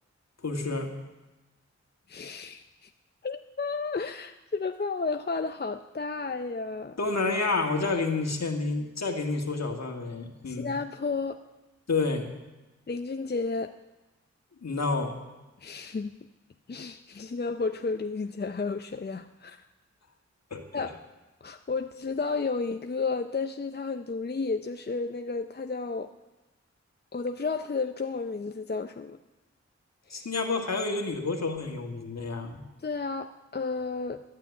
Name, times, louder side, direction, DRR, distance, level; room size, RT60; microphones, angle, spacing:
voice 1, 0.4-0.9 7.0-10.8 11.9-12.3 14.6-15.2 20.5-20.9 30.1-32.6, left 3 dB, 65° left, 3 dB, 2.0 m, -29 dB
voice 2, 2.1-2.9 3.2-7.0 10.5-11.4 12.9-13.8 15.6-16.2 16.7-19.6 20.7-20.9 21.4-26.1 27.1-29.2 30.1-30.3 32.8-34.2, left 4 dB, 35° left, 7 dB, 0.6 m, -32 dB
13.5 x 9.8 x 8.4 m, 1.1 s
cardioid pair, 45°, 29 cm